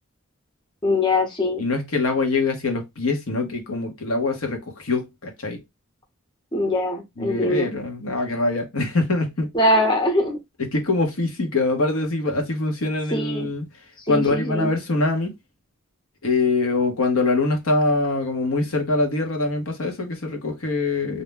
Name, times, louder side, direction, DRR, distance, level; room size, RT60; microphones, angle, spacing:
voice 1, 0.8-1.6 6.5-7.7 9.5-10.4 13.1-13.5 14.1-14.7, left 1 dB, 25° left, 0.7 m, -22 dB
voice 2, 1.6-5.6 7.2-9.5 10.6-13.6 14.1-15.3 16.2-21.2, left 3 dB, 85° left, 1.0 m, -23 dB
2.6 x 2.1 x 3.3 m
head